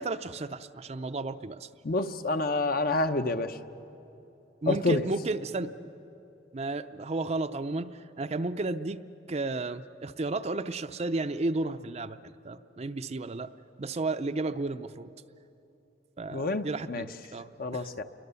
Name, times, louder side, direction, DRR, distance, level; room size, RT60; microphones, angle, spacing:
voice 1, 0.0-1.7 4.6-5.7 6.5-13.5 13.8-15.1 16.2-17.9, right 2 dB, 35° right, 10 dB, 0.5 m, -33 dB
voice 2, 1.8-3.6 4.7-5.0 16.3-17.1 17.6-18.0, left 2 dB, 50° left, 8 dB, 0.8 m, -28 dB
28.5 x 23.0 x 7.0 m, 2.9 s
head